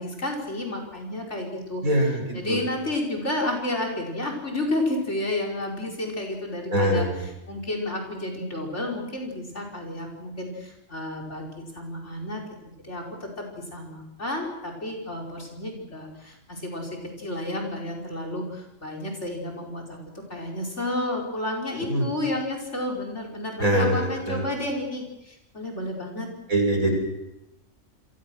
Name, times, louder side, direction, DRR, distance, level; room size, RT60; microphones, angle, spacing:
voice 1, 0.0-1.8 2.3-7.1 7.5-12.4 12.8-26.3, left 1 dB, 55° left, 0 dB, 5.5 m, -31 dB
voice 2, 1.8-2.6 6.7-7.2 21.8-22.1 23.6-24.5 26.5-27.0, right 1 dB, 85° right, 2 dB, 6.8 m, -23 dB
28.5 x 22.5 x 6.4 m, 0.92 s
omnidirectional pair, 1.4 m